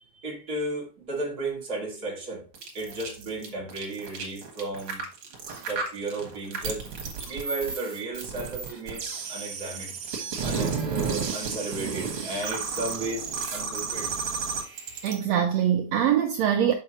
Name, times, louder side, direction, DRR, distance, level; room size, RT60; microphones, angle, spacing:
voice 1, 0.1-2.4 2.7-5.0 5.6-6.9 7.3-9.9 10.4-14.1, right 2 dB, 30° right, 2.3 m, -34 dB
sound 1, 2.5-15.2, right 5 dB, 55° right, 2.0 m, -32 dB
voice 2, 15.0-16.7, right 9 dB, 85° right, 1.5 m, -23 dB
6.5 x 5.5 x 2.9 m
omnidirectional pair, 3.6 m